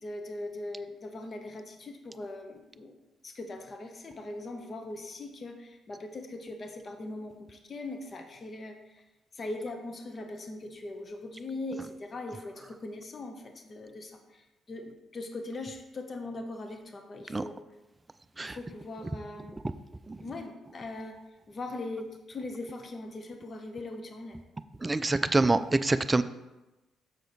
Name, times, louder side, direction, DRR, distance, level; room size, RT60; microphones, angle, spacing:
voice 1, 0.0-2.9 3.2-9.0 9.3-17.6 18.4-19.6 20.2-21.2 21.5-24.4, left 2 dB, 40° left, 5 dB, 0.8 m, -40 dB
voice 2, 24.8-26.2, right 2 dB, 20° right, 11 dB, 0.3 m, -25 dB
6.7 x 4.8 x 4.0 m, 1.0 s
cardioid pair, 90°, 0 cm